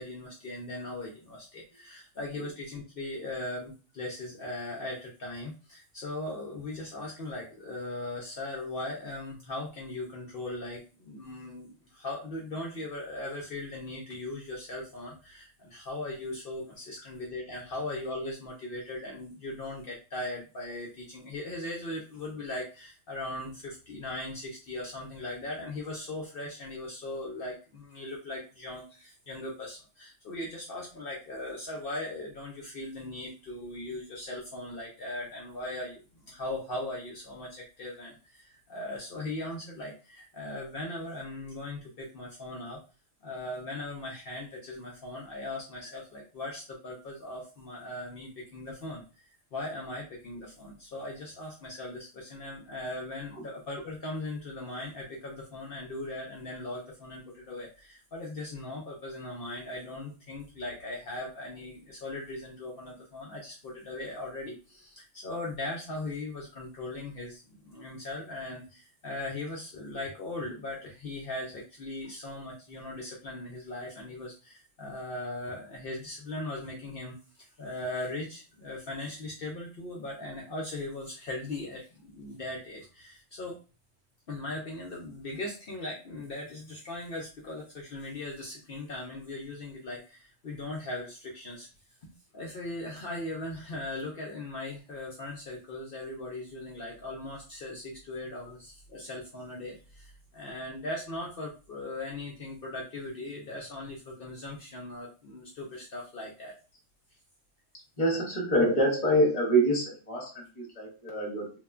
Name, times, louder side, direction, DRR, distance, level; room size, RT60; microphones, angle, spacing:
voice 1, 0.0-42.8 43.2-77.2 77.6-83.6 84.3-91.7 92.3-106.5, left 2 dB, 60° left, -1 dB, 0.6 m, -39 dB
voice 2, 108.0-111.5, right 1 dB, 35° left, -1 dB, 0.9 m, -26 dB
3.0 x 2.1 x 2.3 m, 0.34 s
omnidirectional pair, 1.3 m